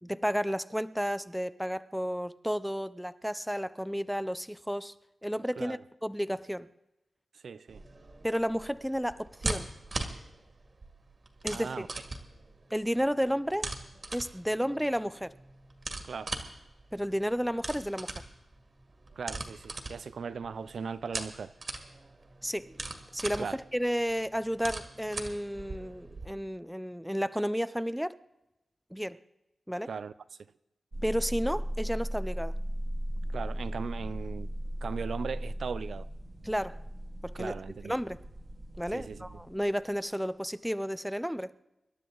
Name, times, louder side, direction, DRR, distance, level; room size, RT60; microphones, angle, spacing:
voice 1, 0.0-4.9 5.2-6.7 8.2-9.7 11.4-11.9 12.7-13.7 14.1-15.3 16.9-18.1 22.4-22.7 23.1-28.2 28.9-29.2 29.7-29.9 31.0-32.6 36.4-36.8 37.2-37.5 37.8-38.2 38.8-41.5, equal, ahead, 0.5 m, -32 dB
voice 2, 7.3-7.8 11.5-11.9 16.0-16.3 19.2-21.5 23.4-23.6 29.9-30.1 33.3-34.5 34.8-36.1 37.3-37.9 38.9-39.4, right 5 dB, 75° right, 0.5 m, -38 dB
sound 1, 7.7-26.3, right 2 dB, 40° right, 1.9 m, -41 dB
sound 2, 30.9-39.8, equal, 25° right, 1.4 m, -37 dB
26.0 x 12.0 x 3.9 m
wide cardioid pair, 120°, 0 cm